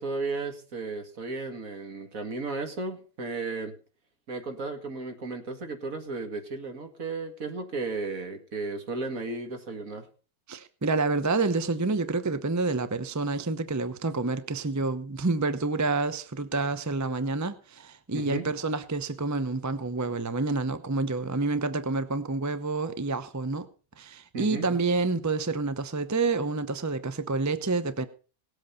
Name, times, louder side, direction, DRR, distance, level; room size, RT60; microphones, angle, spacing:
voice 1, 0.0-3.7 4.3-10.1 18.1-18.5 24.3-24.7, right 3 dB, 55° right, 2.4 m, -34 dB
voice 2, 10.5-23.7 24.0-28.0, right 3 dB, 20° right, 0.4 m, -28 dB
18.5 x 8.1 x 5.6 m
omnidirectional pair, 1.7 m